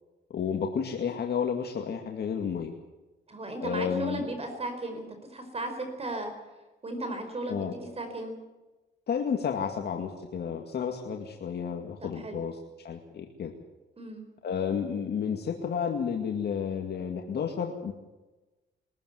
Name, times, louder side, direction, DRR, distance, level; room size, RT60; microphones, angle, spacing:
voice 1, 0.3-2.7 3.6-4.3 7.5-7.7 9.1-12.6 12.8-13.5 14.4-17.9, left 7 dB, 55° left, 3 dB, 2.2 m, -31 dB
voice 2, 3.3-5.0 5.3-6.3 6.8-8.3 12.0-12.4 14.0-14.2, right 2 dB, 30° right, 6 dB, 5.0 m, -35 dB
22.5 x 14.0 x 9.6 m, 1.1 s
cardioid pair, 90°, 20 cm